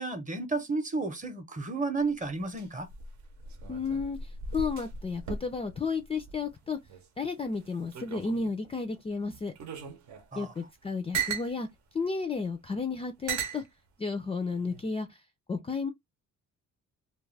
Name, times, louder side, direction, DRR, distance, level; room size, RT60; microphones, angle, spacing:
voice 1, 0.0-2.9 10.3-10.5, right 3 dB, 25° right, 0.7 m, -32 dB
sound 1, 2.0-7.1 7.4-8.7 9.3-11.5 12.4-12.5 13.3-13.6 14.5-14.9, right 6 dB, 70° right, 0.8 m, -38 dB
voice 2, 3.7-6.8 7.2-9.5 10.3-11.7 11.9-13.6 14.0-15.2 15.5-15.9, left 4 dB, 20° left, 0.3 m, -32 dB
2.3 x 2.2 x 3.2 m
cardioid pair, 90°, 30 cm